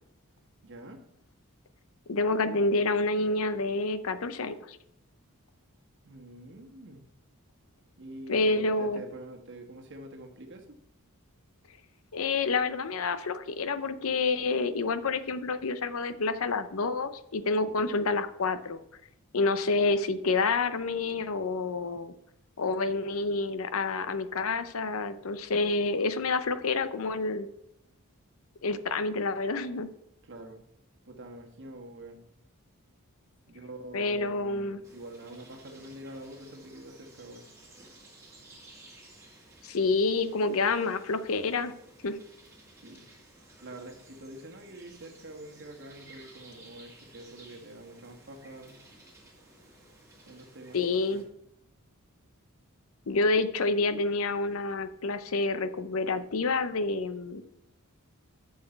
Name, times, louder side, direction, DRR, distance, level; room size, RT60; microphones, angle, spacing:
voice 1, 0.6-1.0 6.0-7.0 8.0-10.8 30.2-30.6 31.0-32.2 33.5-37.4 42.8-43.0 43.6-48.8 50.3-51.2, right 1 dB, 55° right, 3 dB, 1.4 m, -46 dB
voice 2, 2.1-4.8 8.3-9.0 12.1-18.8 19.3-22.1 22.6-27.5 28.6-29.9 33.9-34.8 39.6-41.7 42.0-42.2 50.7-51.2 53.1-57.5, left 3 dB, 70° left, 12 dB, 0.7 m, -28 dB
sound 1, 34.8-51.2, right 2 dB, 15° right, 2.5 m, -55 dB
7.9 x 6.5 x 4.4 m, 0.80 s
head